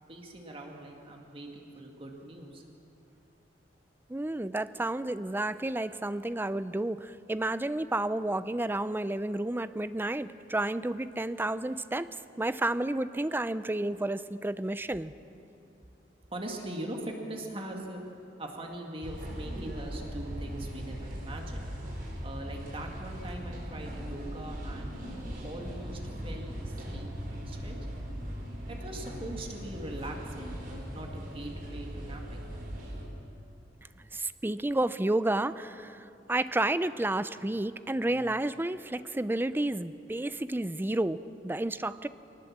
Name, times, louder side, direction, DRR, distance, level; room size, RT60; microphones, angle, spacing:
voice 1, 0.1-2.6 16.3-18.0 18.4-21.7 22.2-25.0 25.4-27.8 28.7-30.6 30.9-32.5, right 1 dB, 30° right, 1 dB, 2.2 m, -41 dB
voice 2, 4.1-12.1 12.4-15.1 34.1-42.1, right 1 dB, 10° right, 14 dB, 0.5 m, -31 dB
sound 1, 19.0-33.0, equal, 55° right, 4.8 m, -39 dB
23.0 x 19.0 x 7.3 m, 2.6 s
head